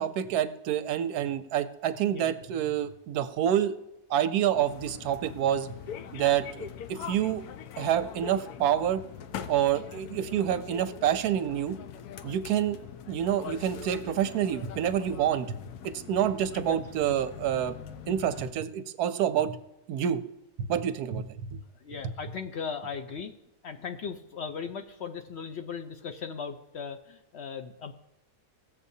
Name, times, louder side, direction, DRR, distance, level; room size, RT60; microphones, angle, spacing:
voice 1, 0.0-3.7 4.1-5.7 6.1-7.4 7.8-9.0 9.5-11.7 12.2-12.8 13.1-15.5 15.8-17.7 18.1-19.6 19.9-20.2 20.7-21.6 22.0-22.1, right 10 dB, 90° right, 11 dB, 1.2 m, -27 dB
sound 1, 4.5-18.5, left 8 dB, 90° left, 1.2 m, -42 dB
voice 2, 21.8-23.3 23.6-27.9, left 6 dB, 60° left, 6 dB, 0.7 m, -38 dB
16.5 x 7.4 x 2.7 m, 0.88 s
omnidirectional pair, 1.6 m